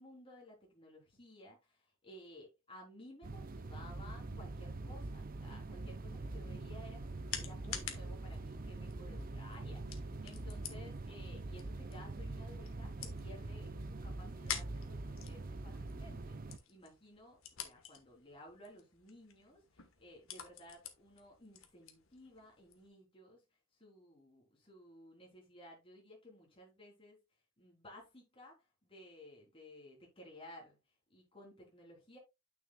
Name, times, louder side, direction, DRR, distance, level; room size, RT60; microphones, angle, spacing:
voice 1, 0.0-7.1 7.3-23.4 23.7-27.2 27.6-30.8 31.1-32.2, left 1 dB, 25° left, 3.5 m, -56 dB
sound 1, 3.2-16.6, right 2 dB, 45° right, 0.7 m, -44 dB
sound 2, 6.5-22.9, left 9 dB, 80° left, 1.4 m, -50 dB
9.2 x 7.1 x 2.3 m
head